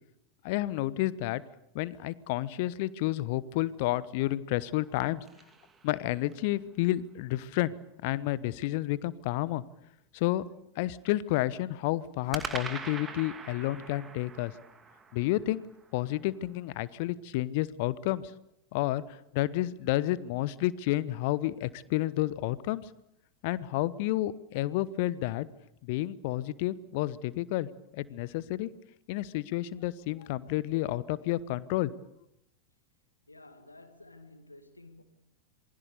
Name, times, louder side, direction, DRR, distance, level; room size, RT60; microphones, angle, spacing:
voice 1, 0.4-1.4 1.7-5.2 5.8-7.7 8.0-9.6 10.1-10.4 10.8-14.5 15.1-15.6 15.9-18.3 18.7-22.9 23.4-25.5 25.8-27.7 27.9-28.7 29.1-31.9, left 16 dB, 50° left, 1.0 m, -30 dB
sound 1, 4.6-6.5 12.3-16.6, right 5 dB, 20° right, 2.4 m, -43 dB
voice 2, 33.3-35.0, left 2 dB, 80° left, 2.2 m, -52 dB
27.0 x 21.5 x 6.8 m
figure-of-eight pair, 90°, 0 cm